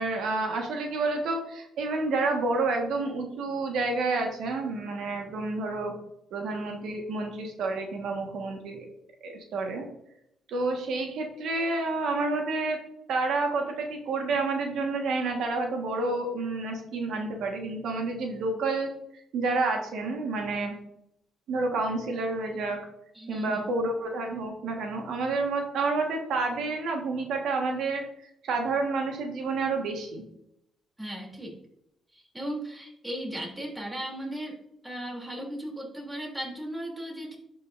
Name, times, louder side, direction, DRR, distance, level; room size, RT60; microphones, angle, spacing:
voice 1, 0.0-5.9 6.3-8.8 9.2-9.9 10.5-12.8 13.1-20.8 21.5-22.8 23.3-30.2, right 3 dB, 75° right, 2 dB, 1.5 m, -29 dB
voice 2, 23.1-23.6 31.0-31.6 32.1-34.6 34.8-37.4, right 1 dB, 10° right, -1 dB, 3.0 m, -36 dB
11.5 x 5.7 x 2.6 m, 0.77 s
cardioid pair, 90°, 0 cm